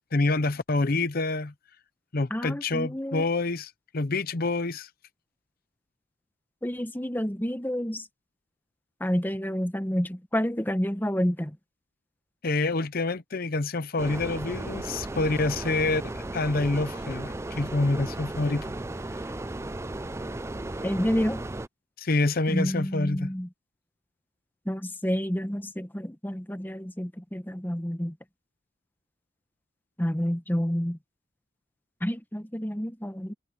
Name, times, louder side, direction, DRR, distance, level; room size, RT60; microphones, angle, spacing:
voice 1, 0.1-1.5 2.1-4.9 12.4-18.7 22.0-23.3, left 2 dB, 50° left, 0.7 m, -27 dB
voice 2, 2.3-3.2 6.6-8.1 9.0-11.6 20.8-21.4 22.5-23.5 24.7-28.2 30.0-31.0 32.0-33.3, equal, 10° left, 1.0 m, -29 dB
sound 1, 14.0-21.7, right 2 dB, 15° right, 0.4 m, -35 dB
head